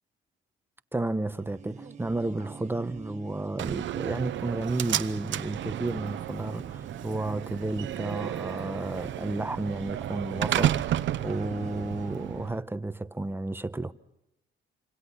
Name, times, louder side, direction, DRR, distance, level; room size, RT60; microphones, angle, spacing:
voice 1, 0.9-13.9, right 2 dB, 10° right, 1.0 m, -32 dB
sound 1, 1.2-12.3, right 5 dB, 35° right, 1.7 m, -47 dB
Slam, 3.6-12.6, right 12 dB, 70° right, 0.8 m, -32 dB
27.5 x 26.0 x 5.8 m
cardioid pair, 90°, 20 cm